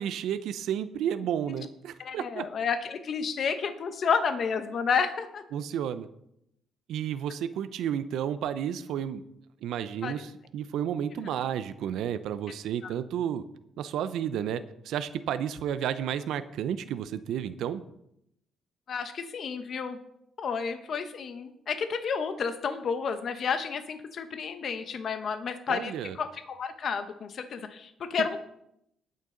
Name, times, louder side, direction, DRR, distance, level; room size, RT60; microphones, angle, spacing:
voice 1, 0.0-2.5 5.5-6.1 6.9-9.2 9.6-13.4 13.8-17.8 25.7-26.2 28.2-28.4, right 9 dB, 80° right, 12 dB, 0.5 m, -32 dB
voice 2, 2.0-5.4 10.0-10.3 18.9-20.0 20.4-28.4, left 6 dB, 55° left, 8 dB, 0.9 m, -31 dB
18.5 x 6.6 x 3.8 m, 0.78 s
cardioid pair, 90°, 0 cm